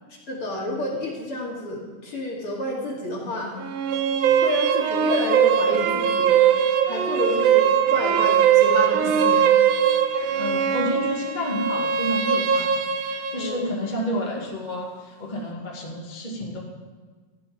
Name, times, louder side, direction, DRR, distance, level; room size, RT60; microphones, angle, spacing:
voice 1, 0.3-3.5 4.4-6.5 6.9-9.5 10.2-10.3 13.4-13.7, left 1 dB, 40° left, -3 dB, 2.9 m, -30 dB
sound 1, 3.6-13.6, right 8 dB, 85° right, 2.7 m, -21 dB
voice 2, 10.3-16.6, equal, 15° left, -3 dB, 1.7 m, -30 dB
14.5 x 11.5 x 5.2 m, 1.4 s
omnidirectional pair, 4.1 m